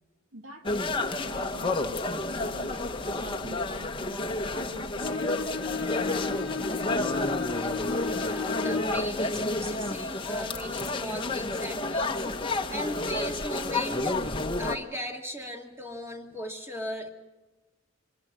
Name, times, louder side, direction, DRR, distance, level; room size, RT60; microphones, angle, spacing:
voice 1, 0.3-7.3, right 1 dB, 85° right, 6 dB, 2.2 m, -47 dB
sound 1, 0.6-14.8, left 2 dB, 25° left, 1.1 m, -30 dB
Bowed string instrument, 5.0-9.1, left 5 dB, 65° left, 0.6 m, -34 dB
voice 2, 8.1-14.3 14.6-17.1, equal, 10° right, 3 dB, 2.1 m, -38 dB
25.5 x 19.5 x 6.2 m, 1.2 s
head